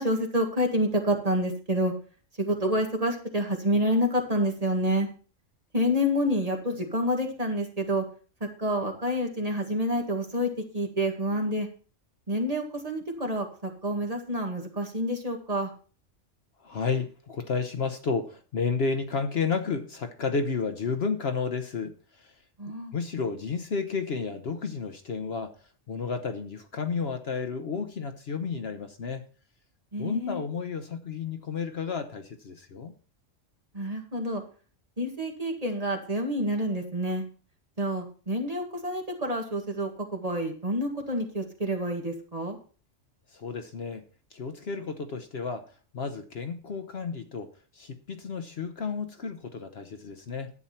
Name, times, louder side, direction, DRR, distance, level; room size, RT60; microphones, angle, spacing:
voice 1, 0.0-1.9 2.4-5.1 5.7-8.0 8.4-11.7 12.3-15.7 22.6-22.9 29.9-30.4 33.7-34.4 35.0-37.2 37.8-42.6, equal, 30° right, 2 dB, 1.9 m, -28 dB
voice 2, 16.6-22.3 22.9-25.6 25.9-29.2 30.0-32.9 43.3-44.0 44.3-50.5, left 5 dB, 55° left, 8 dB, 1.0 m, -32 dB
11.0 x 8.6 x 4.3 m, 0.39 s
omnidirectional pair, 1.3 m